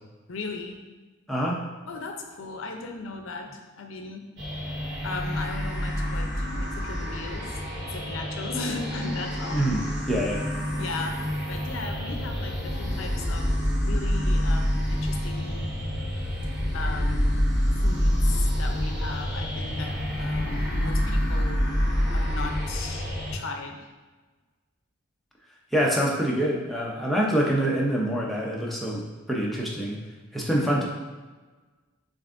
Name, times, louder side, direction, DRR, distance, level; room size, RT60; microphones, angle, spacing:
voice 1, 0.3-0.8 1.9-4.3 5.0-7.6 7.8-9.6 10.8-13.5 13.8-15.7 16.7-17.5 17.8-23.9 30.6-30.8, left 3 dB, 70° left, 4 dB, 0.5 m, -37 dB
voice 2, 1.3-1.6 9.5-10.5 25.7-30.0 30.3-30.9, equal, ahead, -4 dB, 0.6 m, -25 dB
sound 1, 4.4-23.3, equal, 55° right, 1.0 m, -27 dB
Mechanical fan, 16.1-21.4, right 2 dB, 25° right, 1.1 m, -48 dB
7.0 x 2.6 x 2.5 m, 1.3 s
head